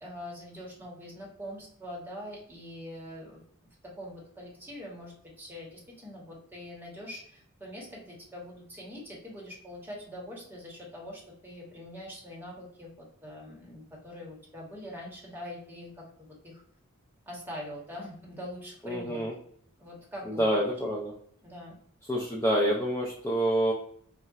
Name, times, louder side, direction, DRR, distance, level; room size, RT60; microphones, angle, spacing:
voice 1, 0.0-3.4 3.9-16.6 17.3-19.3 19.8-20.6 21.4-21.8, left 1 dB, 10° right, -3 dB, 0.9 m, -43 dB
voice 2, 18.8-19.4 20.2-21.1 22.0-23.7, right 1 dB, 10° left, -2 dB, 0.3 m, -27 dB
3.7 x 2.1 x 2.3 m, 0.63 s
head